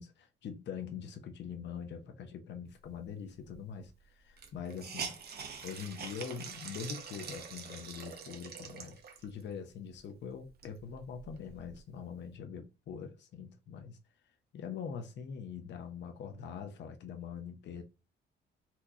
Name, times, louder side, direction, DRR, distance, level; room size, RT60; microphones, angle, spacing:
voice 1, 0.0-5.1 5.6-14.0 14.5-17.8, left 7 dB, 65° left, 0.7 m, -43 dB
Hiss, 3.5-3.6 3.8-3.9 4.4-9.4 10.0-10.1 10.4-11.8, right 6 dB, 55° right, 0.9 m, -45 dB
4.3 x 2.3 x 2.8 m
cardioid pair, 90°, 20 cm